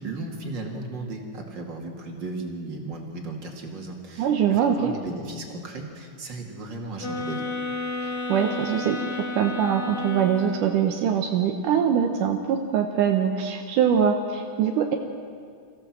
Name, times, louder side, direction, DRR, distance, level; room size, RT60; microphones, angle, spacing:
voice 1, 0.0-7.5, right 2 dB, 35° right, 1 dB, 2.6 m, -35 dB
voice 2, 4.2-4.9 8.0-15.0, right 8 dB, 80° right, 3 dB, 2.5 m, -23 dB
sound 1, 7.0-10.9, left 3 dB, 45° left, 3.6 m, -32 dB
25.0 x 15.0 x 7.5 m, 2.1 s
omnidirectional pair, 3.6 m